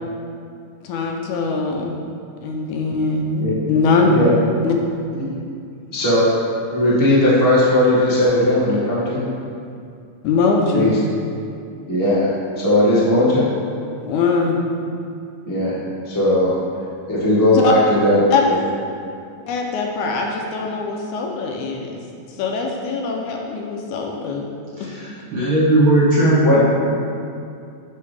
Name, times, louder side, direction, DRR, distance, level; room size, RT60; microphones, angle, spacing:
voice 1, 0.8-1.9 2.4-4.1 4.6-4.8 10.2-11.0 14.0-14.6 17.5-17.7 18.3-18.4 19.5-22.0 22.4-24.5, left 4 dB, 80° left, 1 dB, 2.0 m, -21 dB
voice 2, 5.9-6.3 6.7-9.2 10.7-10.9 11.9-13.4 15.4-15.8 16.1-16.5 17.1-18.5 26.4-26.6, left 1 dB, 15° left, -9 dB, 0.7 m, -17 dB
voice 3, 24.8-26.6, right 1 dB, 55° right, -9 dB, 1.5 m, -17 dB
8.6 x 5.5 x 3.4 m, 2.4 s
omnidirectional pair, 3.7 m